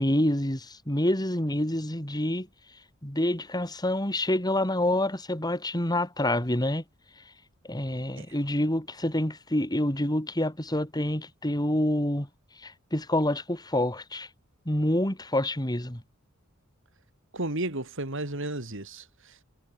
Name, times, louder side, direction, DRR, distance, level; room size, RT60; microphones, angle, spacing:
voice 1, 0.0-2.5 3.0-6.8 7.7-12.3 12.6-14.3 14.7-16.0, left 1 dB, 20° left, 3.9 m, -27 dB
voice 2, 17.3-19.4, right 2 dB, 60° right, 4.0 m, -33 dB
head